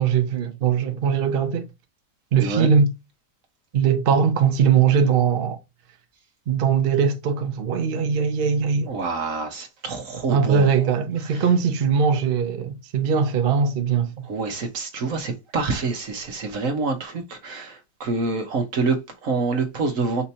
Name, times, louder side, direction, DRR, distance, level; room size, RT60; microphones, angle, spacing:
voice 1, 0.0-1.7 2.3-2.9 3.7-5.6 6.5-8.9 10.3-14.1, right 6 dB, 70° right, 0.5 m, -20 dB
voice 2, 2.4-2.7 8.9-10.7 11.3-11.4 14.2-20.3, right 4 dB, 55° right, 1.4 m, -27 dB
5.5 x 2.8 x 2.7 m
omnidirectional pair, 1.9 m